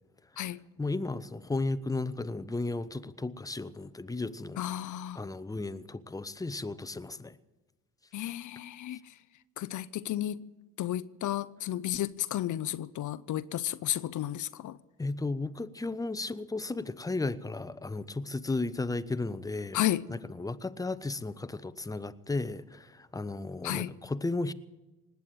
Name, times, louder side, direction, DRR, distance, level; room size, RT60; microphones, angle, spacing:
voice 1, 0.8-4.6 5.1-7.4 8.2-8.3 15.0-19.8 20.1-24.5, left 3 dB, 10° left, 0.7 m, -34 dB
voice 2, 4.6-5.2 8.1-9.0 9.6-10.4 10.8-14.8 19.7-20.0 23.6-23.9, left 13 dB, 50° left, 0.6 m, -32 dB
19.5 x 8.4 x 9.0 m
supercardioid pair, 70°, 38 cm